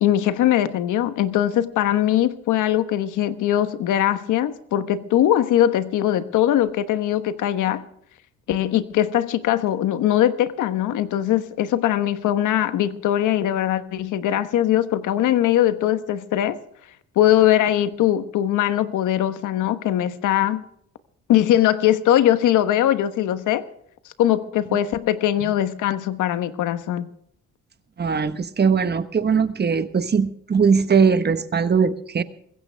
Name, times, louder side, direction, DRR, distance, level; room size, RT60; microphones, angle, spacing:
voice 1, 0.0-7.9 8.5-16.6 17.1-20.6 21.3-23.6 24.2-27.1, left 12 dB, 85° left, 1.2 m, -21 dB
voice 2, 28.0-32.2, right 6 dB, 35° right, 1.2 m, -20 dB
21.5 x 16.0 x 3.4 m
cardioid pair, 90°, 30 cm